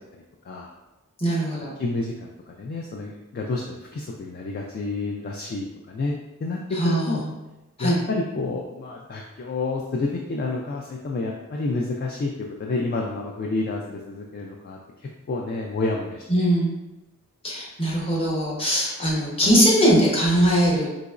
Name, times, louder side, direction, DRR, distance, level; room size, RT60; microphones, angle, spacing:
voice 1, 1.2-1.8 6.7-7.3 7.8-8.0 16.3-16.7 17.4-20.9, equal, 25° left, -5 dB, 0.9 m, -21 dB
voice 2, 1.8-6.1 6.4-6.6 6.8-7.2 7.8-12.3 12.6-16.2, left 3 dB, 45° left, 0 dB, 0.3 m, -29 dB
3.9 x 2.9 x 2.4 m, 1.0 s
head